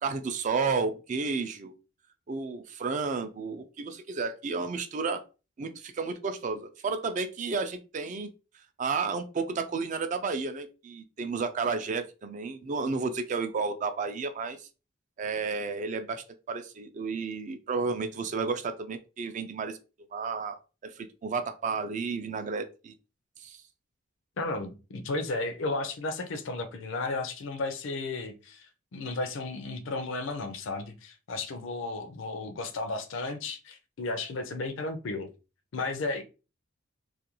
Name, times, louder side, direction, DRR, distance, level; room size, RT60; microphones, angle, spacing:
voice 1, 0.0-1.7 2.3-5.2 5.6-8.3 8.8-14.7 15.2-19.8 20.1-22.9 23.4-23.6, right 4 dB, 40° right, 0.3 m, -32 dB
voice 2, 24.4-28.6 28.9-35.3 35.7-36.2, left 3 dB, 70° left, 0.4 m, -34 dB
2.4 x 2.2 x 2.9 m
head